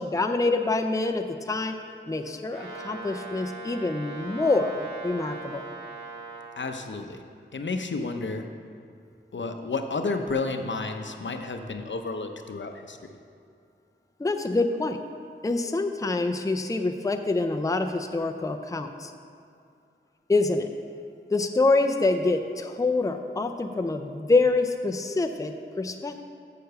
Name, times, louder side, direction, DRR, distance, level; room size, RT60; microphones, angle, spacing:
voice 1, 0.0-1.8 2.1-5.6 14.2-15.0 15.4-19.1 20.3-20.7 21.3-26.2, left 3 dB, 15° left, 5 dB, 0.5 m, -26 dB
Brass instrument, 2.5-6.5, right 4 dB, 90° right, 2.0 m, -40 dB
voice 2, 6.6-7.2 7.5-8.5 9.3-13.0, left 3 dB, 65° left, 6 dB, 0.7 m, -31 dB
6.7 x 6.7 x 6.7 m, 2.4 s
wide cardioid pair, 75°, 20 cm